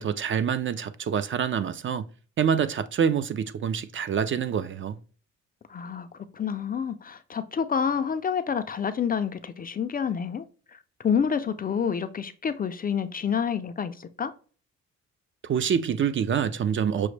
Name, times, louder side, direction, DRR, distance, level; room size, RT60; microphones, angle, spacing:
voice 1, 0.0-2.0 2.4-5.0 15.4-17.1, right 7 dB, 40° right, 0.4 m, -26 dB
voice 2, 5.7-10.4 10.7-10.8 11.0-14.3, left 7 dB, 30° left, 0.4 m, -28 dB
6.1 x 2.1 x 3.2 m
cardioid pair, 90°, 30 cm